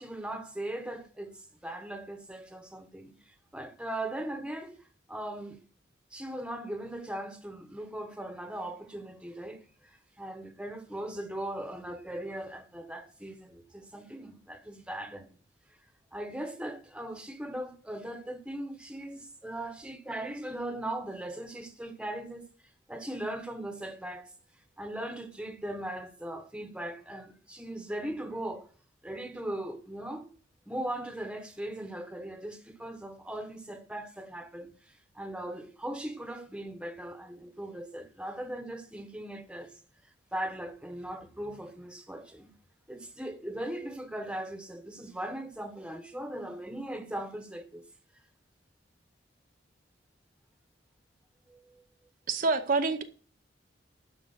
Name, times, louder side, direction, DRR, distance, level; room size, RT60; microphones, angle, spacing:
voice 1, 0.0-4.8 5.1-5.6 6.1-15.3 16.1-22.5 22.9-24.3 24.8-28.7 29.0-30.3 30.7-39.7 40.3-42.5 42.9-47.8 51.5-51.8, right 1 dB, 5° right, 1.3 m, -39 dB
voice 2, 52.3-53.0, right 3 dB, 45° right, 0.8 m, -26 dB
12.0 x 5.1 x 7.9 m
head